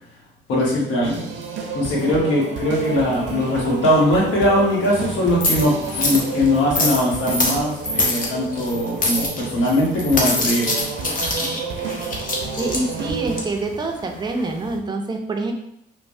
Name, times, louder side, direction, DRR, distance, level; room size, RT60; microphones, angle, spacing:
voice 1, 0.5-1.3 1.7-10.8 11.4-11.5, left 1 dB, 75° left, -4 dB, 1.0 m, -20 dB
sound 1, 1.0-13.4, right 5 dB, 75° right, 0.5 m, -31 dB
sound 2, 2.7-14.8, left 2 dB, 45° left, 0.7 m, -27 dB
voice 2, 12.6-15.5, right 2 dB, 20° right, 3 dB, 0.4 m, -26 dB
3.2 x 2.1 x 2.6 m, 0.74 s
cardioid pair, 90°, 20 cm